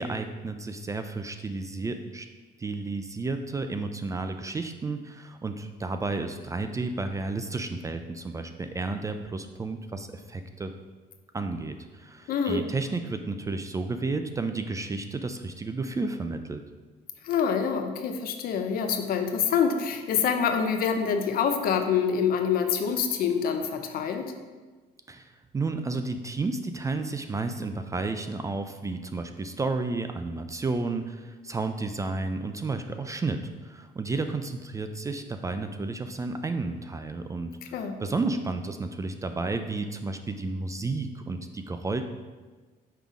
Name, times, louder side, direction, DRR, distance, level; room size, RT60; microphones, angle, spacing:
voice 1, 0.0-2.3 2.6-10.7 11.3-16.6 25.1-37.5 38.0-42.0, right 3 dB, 20° right, 7 dB, 0.3 m, -32 dB
voice 2, 12.3-12.7 17.2-24.3 37.7-37.9, left 7 dB, 60° left, 6 dB, 0.7 m, -26 dB
5.5 x 3.5 x 4.9 m, 1.3 s
cardioid pair, 110°, 17 cm